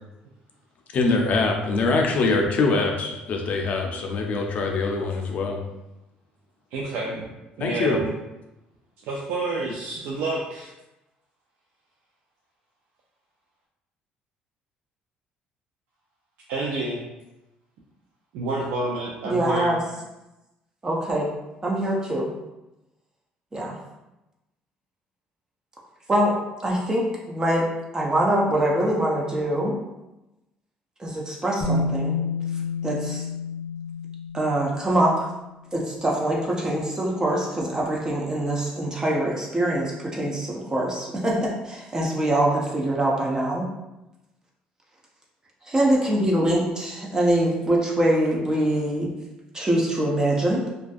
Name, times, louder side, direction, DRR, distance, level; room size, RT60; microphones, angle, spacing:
voice 1, 0.9-5.6 7.6-8.0, left 3 dB, 50° left, 2 dB, 0.4 m, -23 dB
voice 2, 6.7-7.3 7.6-8.1 9.1-10.7 16.5-17.0 18.3-19.7, right 2 dB, 85° right, -4 dB, 0.4 m, -29 dB
voice 3, 19.2-19.8 20.8-21.3 21.6-22.3 23.5-23.8 26.1-27.6 27.9-29.7 31.0-32.2 32.8-33.2 34.3-35.3 35.7-43.7 45.7-49.1 49.5-50.6, right 1 dB, 20° right, -3 dB, 0.5 m, -24 dB
Bass guitar, 31.6-35.5 36.7-36.8, left 3 dB, 10° left, 0.9 m, -29 dB
2.5 x 2.2 x 2.4 m, 0.97 s
cardioid pair, 105°, 3 cm